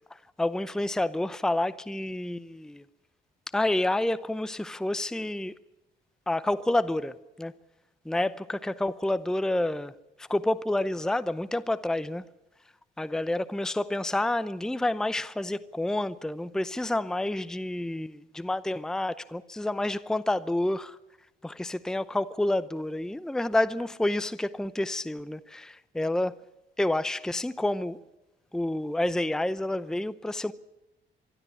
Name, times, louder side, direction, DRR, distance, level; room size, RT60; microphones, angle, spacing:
voice 1, 0.4-2.8 3.5-5.5 6.3-7.5 8.1-9.9 10.2-12.2 13.0-21.0 21.4-26.4 26.8-28.0 28.5-30.5, left 1 dB, 5° left, 0.7 m, -29 dB
24.0 x 12.5 x 9.6 m
cardioid pair, 90°, 20 cm